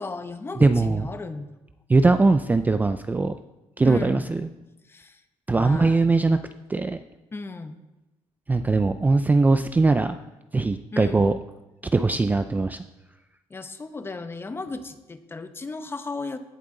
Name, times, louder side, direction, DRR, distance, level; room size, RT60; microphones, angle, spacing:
voice 1, 0.0-1.5 3.8-4.3 4.9-5.2 5.5-6.0 7.3-7.8 10.9-11.2 13.5-16.4, left 3 dB, 20° left, 9 dB, 0.8 m, -35 dB
voice 2, 0.6-1.0 1.9-3.3 3.8-4.5 5.5-6.4 6.7-7.0 8.5-10.2 10.5-11.4 11.9-12.8, right 3 dB, 15° right, 9 dB, 0.3 m, -20 dB
16.5 x 7.7 x 3.8 m, 1.0 s
cardioid pair, 135°, 11 cm